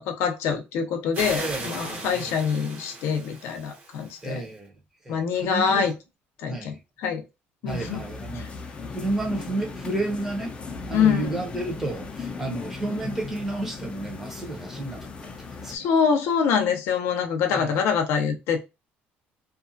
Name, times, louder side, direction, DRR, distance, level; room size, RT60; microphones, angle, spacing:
voice 1, 0.0-4.4 5.1-5.9 6.4-6.7 7.0-7.2 7.6-8.0 10.9-11.4 15.7-18.6, left 6 dB, 75° left, 0.6 m, -25 dB
sound 1, 1.1-4.4, right 2 dB, 40° right, 1.0 m, -37 dB
voice 2, 1.3-2.5 4.2-4.7 5.0-5.9 6.5-6.8 7.6-8.5 8.9-10.5 10.9-15.9 17.5-17.8, right 2 dB, 10° right, 0.8 m, -32 dB
sound 2, 7.7-15.8, left 4 dB, 25° left, 0.5 m, -37 dB
2.5 x 2.3 x 2.6 m
cardioid pair, 150°, 4 cm